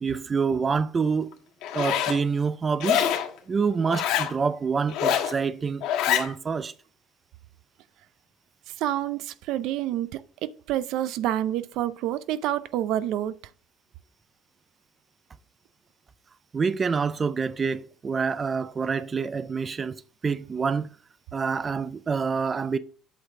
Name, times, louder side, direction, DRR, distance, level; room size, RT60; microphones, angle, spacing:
voice 1, 0.0-1.3 1.7-3.2 3.5-6.7 16.5-19.9 20.2-20.9 21.3-22.8, right 5 dB, 25° right, 0.4 m, -27 dB
Zipper (clothing), 1.6-2.2 2.8-3.3 3.9-4.3 4.9-5.3 5.8-6.3, left 10 dB, 80° left, 1.4 m, -25 dB
voice 2, 8.8-13.3, right 12 dB, 75° right, 0.5 m, -28 dB
8.0 x 6.5 x 3.7 m
cardioid pair, 145°, 0 cm